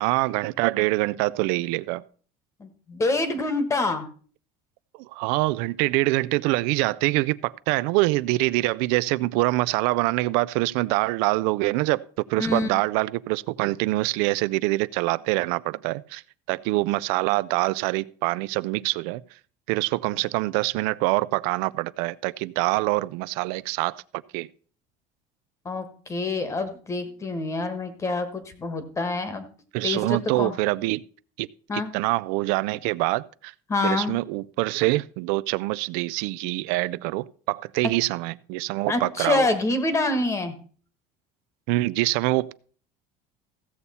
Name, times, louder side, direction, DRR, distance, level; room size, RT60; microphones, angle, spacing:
voice 1, 0.0-2.0 5.0-16.2 16.5-19.2 19.7-24.0 24.3-24.5 29.7-31.0 31.4-31.5 31.7-33.5 33.8-39.5 41.7-42.5, right 20 dB, 80° right, 0.4 m, -25 dB
voice 2, 2.6-4.1 12.4-12.7 25.6-29.5 29.8-30.5 31.7-31.9 33.7-34.1 38.9-40.5, left 2 dB, 20° left, 1.2 m, -26 dB
15.0 x 7.0 x 4.1 m
cardioid pair, 155°, 16 cm